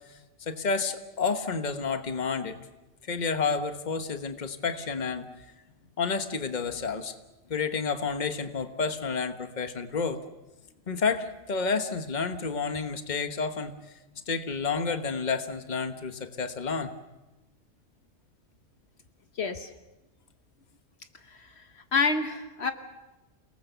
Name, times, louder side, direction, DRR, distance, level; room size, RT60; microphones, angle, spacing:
voice 1, 0.1-2.6 3.1-5.3 6.0-7.1 7.5-10.2 10.9-13.8 14.3-16.9, left 5 dB, 40° left, 8 dB, 1.3 m, -30 dB
voice 2, 19.4-19.7 21.3-22.7, left 4 dB, 60° left, 8 dB, 1.3 m, -29 dB
28.5 x 19.5 x 6.9 m, 1.1 s
omnidirectional pair, 1.3 m